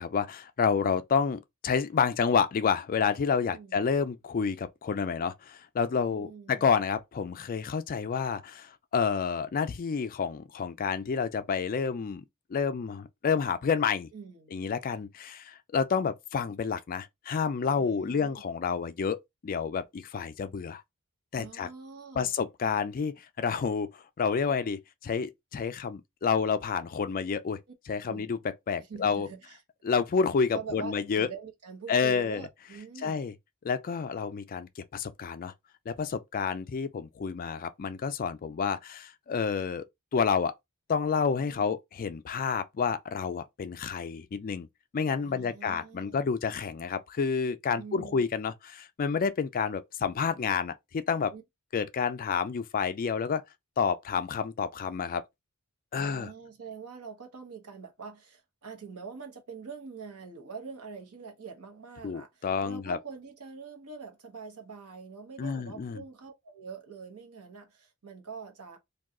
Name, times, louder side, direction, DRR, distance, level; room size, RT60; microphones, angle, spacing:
voice 1, 0.0-12.2 12.5-14.1 14.5-19.2 19.4-20.8 21.3-21.7 22.2-27.6 27.9-28.4 28.7-29.3 29.8-31.3 31.9-32.5 33.0-33.3 33.6-35.5 35.9-39.8 40.1-40.5 40.9-44.7 44.9-51.3 51.7-53.4 53.8-55.2 55.9-56.3 62.0-63.0 65.4-66.0, left 6 dB, 40° left, 0.4 m, -29 dB
voice 2, 3.4-3.9 6.1-6.7 14.1-14.5 17.7-18.4 21.3-22.3 28.1-28.3 28.9-29.6 30.5-33.2 41.4-41.7 45.2-46.2 47.8-48.2 51.3-51.4 55.9-68.8, right 5 dB, 85° right, 0.9 m, -44 dB
2.6 x 2.3 x 3.7 m
head